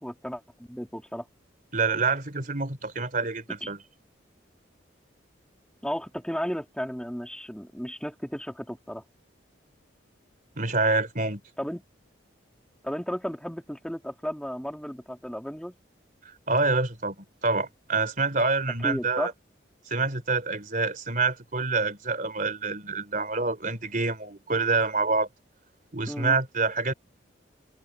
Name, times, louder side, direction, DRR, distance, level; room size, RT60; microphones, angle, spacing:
voice 1, 0.0-1.3 3.6-3.7 5.8-9.0 11.6-11.8 12.8-15.8 18.8-19.3 26.1-26.4, equal, 5° left, 2.7 m, -34 dB
voice 2, 1.7-3.8 10.6-11.4 16.5-19.3 19.9-25.3 25.9-26.9, right 3 dB, 45° right, 3.4 m, -27 dB
head